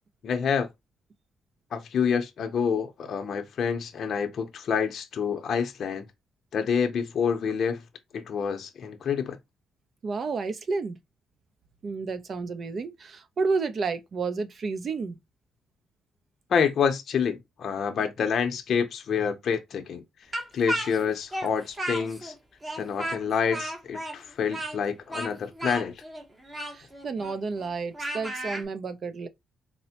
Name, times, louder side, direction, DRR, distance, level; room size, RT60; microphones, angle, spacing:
voice 1, 0.2-0.7 1.7-6.0 6.5-7.8 8.1-9.4 16.5-20.0 20.5-22.3 22.8-26.0, left 6 dB, 60° left, 0.6 m, -27 dB
voice 2, 10.0-11.0 11.8-15.2 26.5-29.3, right 4 dB, 50° right, 0.5 m, -31 dB
Speech, 20.3-22.3 22.6-28.6, right 1 dB, 20° right, 0.9 m, -34 dB
4.2 x 2.0 x 2.8 m
cardioid pair, 90°, 0 cm